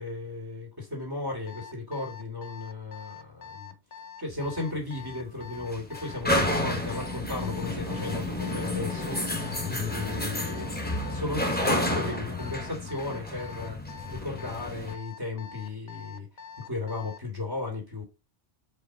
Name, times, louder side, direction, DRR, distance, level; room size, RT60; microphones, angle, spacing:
voice 1, 0.0-3.7 4.2-13.8 14.1-16.3 16.6-18.0, left 3 dB, 20° right, 2.6 m, -35 dB
Alarm, 1.5-17.3, left 7 dB, 45° left, 0.7 m, -45 dB
sound 1, 4.3-14.9, left 1 dB, 10° left, 1.4 m, -31 dB
5.1 x 4.6 x 4.8 m
omnidirectional pair, 1.2 m